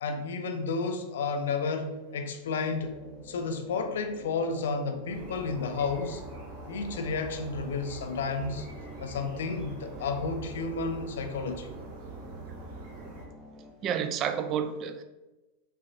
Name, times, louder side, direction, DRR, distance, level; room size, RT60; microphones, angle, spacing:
voice 1, 0.0-3.0 3.2-6.2 6.7-8.7 9.0-11.7, left 4 dB, 60° left, 0.4 m, -32 dB
sound 1, 2.2-13.7, right 1 dB, 10° right, 0.8 m, -49 dB
sound 2, 5.1-13.2, right 3 dB, 45° right, 1.3 m, -44 dB
voice 2, 13.8-15.0, right 8 dB, 30° right, 0.3 m, -30 dB
5.5 x 2.4 x 2.6 m
figure-of-eight pair, 90°, 0 cm